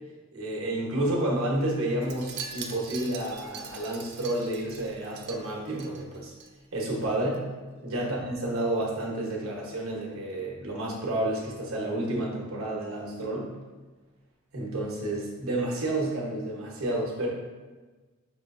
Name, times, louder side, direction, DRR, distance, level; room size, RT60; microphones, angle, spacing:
voice 1, 0.3-6.3 6.7-7.4 7.8-13.5 14.5-17.3, right 1 dB, 75° right, -3 dB, 1.0 m, -30 dB
Wind chime, 2.0-6.5 6.8-7.1 7.3-7.4, right 6 dB, 50° right, 0.4 m, -42 dB
6.3 x 2.3 x 2.5 m, 1.3 s
head